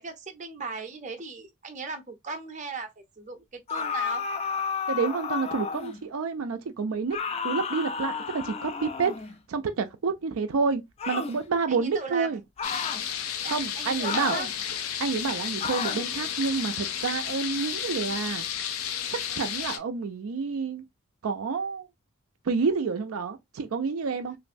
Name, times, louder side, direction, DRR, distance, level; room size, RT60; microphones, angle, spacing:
voice 1, 0.0-4.3 11.7-12.4 13.4-14.5, right 4 dB, 35° right, 0.6 m, -38 dB
sound 1, 3.7-6.0 7.1-9.4 11.0-11.4 12.6-13.0 14.0-14.5 15.6-16.1, left 6 dB, 30° left, 0.3 m, -32 dB
voice 2, 4.9-7.2 7.4-9.1 9.5-10.8 11.1-12.4 13.5-14.4 15.0-18.5 19.1-20.8 21.2-21.9 22.5-24.4, right 5 dB, 80° right, 0.4 m, -29 dB
sound 2, 12.6-19.8, left 9 dB, 85° left, 0.5 m, -32 dB
3.1 x 2.5 x 2.5 m
head